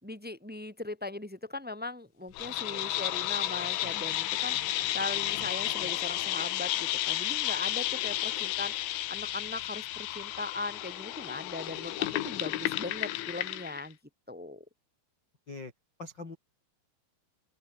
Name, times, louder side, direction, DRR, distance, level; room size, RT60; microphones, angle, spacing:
voice 1, 0.0-14.0 14.3-14.6, left 2 dB, ahead, 4.0 m, -39 dB
sound 1, 2.3-13.9, left 15 dB, 80° left, 3.7 m, -32 dB
voice 2, 16.0-16.4, left 3 dB, 25° left, 3.4 m, -42 dB
open air
omnidirectional pair, 5.6 m